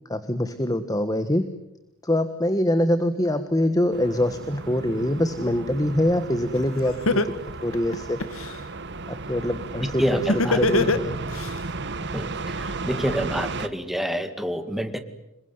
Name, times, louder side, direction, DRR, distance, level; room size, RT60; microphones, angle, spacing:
voice 1, 0.1-1.5 2.0-7.2 7.6-8.2 9.1-10.2 10.6-11.2, left 1 dB, 15° left, 10 dB, 1.4 m, -24 dB
sound 1, 3.9-13.7, right 3 dB, 55° right, 1.4 m, -34 dB
Laughter, 6.5-6.6 7.1-8.5 10.3-11.5, left 2 dB, 80° left, 1.8 m, -21 dB
voice 2, 10.0-10.6 12.1-15.0, equal, ahead, 7 dB, 2.2 m, -27 dB
27.0 x 22.5 x 9.5 m, 0.90 s
head